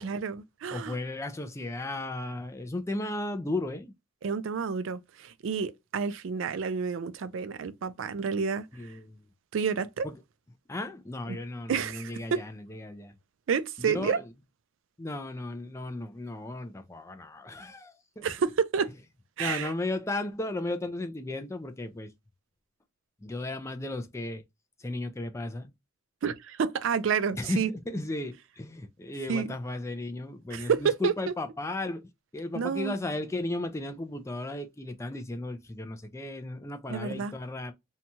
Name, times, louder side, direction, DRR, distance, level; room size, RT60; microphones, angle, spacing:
voice 1, 0.0-1.0 4.2-8.7 9.5-10.1 11.3-11.4 11.7-12.4 13.5-14.2 18.2-18.9 19.4-19.7 26.2-27.7 29.3-29.6 30.5-31.3 32.5-33.0 36.9-37.3, right 6 dB, 65° right, 0.4 m, -29 dB
voice 2, 0.7-3.9 8.8-9.2 10.0-10.1 10.7-13.1 13.8-14.2 15.0-18.3 19.4-22.1 23.2-24.4 24.8-25.7 27.3-32.0 32.3-37.7, left 2 dB, 15° left, 0.3 m, -35 dB
2.7 x 2.3 x 2.8 m
head